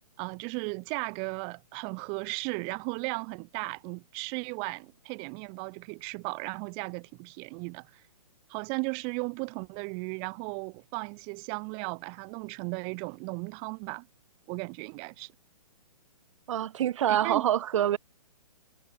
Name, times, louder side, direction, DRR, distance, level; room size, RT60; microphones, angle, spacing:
voice 1, 0.2-8.0 8.5-14.1 14.5-15.3 17.1-17.4, right 39 dB, 30° right, 4.7 m, -36 dB
voice 2, 16.5-18.0, right 11 dB, 50° right, 2.3 m, -26 dB
hypercardioid pair, 145°, 20 cm